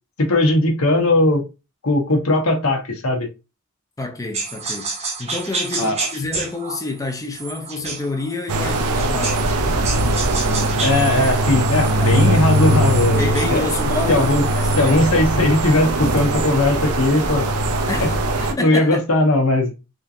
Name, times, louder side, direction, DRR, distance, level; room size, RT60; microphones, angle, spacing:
voice 1, 0.2-1.4 1.8-3.3 5.8-6.0 10.8-13.6 14.1-14.4 14.8-17.5 18.0-18.1 18.4-19.7, left 2 dB, 70° left, 1.0 m, -18 dB
voice 2, 4.0-4.9 5.2-9.9 12.0-12.1 13.2-15.1 17.9-18.2 18.6-19.0, left 2 dB, 15° left, 0.5 m, -28 dB
sound 1, 4.3-9.6 9.8-15.1, right 3 dB, 30° right, 0.6 m, -31 dB
sound 2, 8.5-18.5, right 1 dB, 80° right, 0.5 m, -20 dB
3.6 x 2.7 x 2.6 m
head